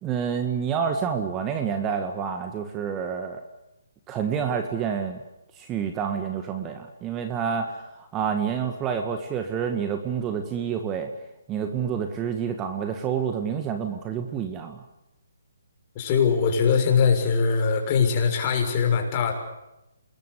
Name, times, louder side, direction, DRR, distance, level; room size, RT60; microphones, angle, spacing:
voice 1, 0.0-3.4 4.1-5.2 5.5-11.1 11.5-14.8, right 7 dB, 20° right, 6 dB, 2.0 m, -28 dB
voice 2, 15.9-19.3, left 6 dB, 30° left, 3 dB, 6.6 m, -21 dB
27.0 x 21.0 x 8.4 m, 0.91 s
hypercardioid pair, 150°, 0 cm